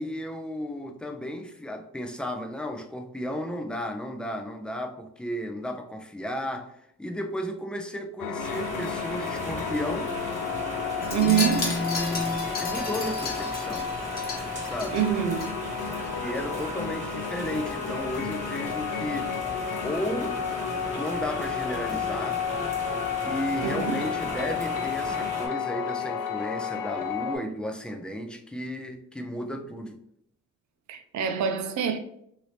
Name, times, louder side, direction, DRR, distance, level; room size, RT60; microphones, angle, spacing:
voice 1, 0.0-10.1 11.2-13.9 14.6-15.0 16.2-19.3 19.8-20.4 20.9-22.4 23.2-30.0, left 1 dB, 5° left, 0.4 m, -33 dB
sound 1, 8.2-27.4, left 7 dB, 80° left, 0.6 m, -32 dB
sound 2, 8.4-25.5, right 1 dB, 25° right, 1.5 m, -38 dB
Wind chime, 11.0-15.5 15.8-16.1 16.3-16.4, left 3 dB, 30° left, 1.1 m, -34 dB
voice 2, 11.1-11.7 14.9-15.6 23.6-24.1 30.9-32.0, right 9 dB, 65° right, 0.6 m, -26 dB
2.8 x 2.8 x 3.2 m
cardioid pair, 90°, 30 cm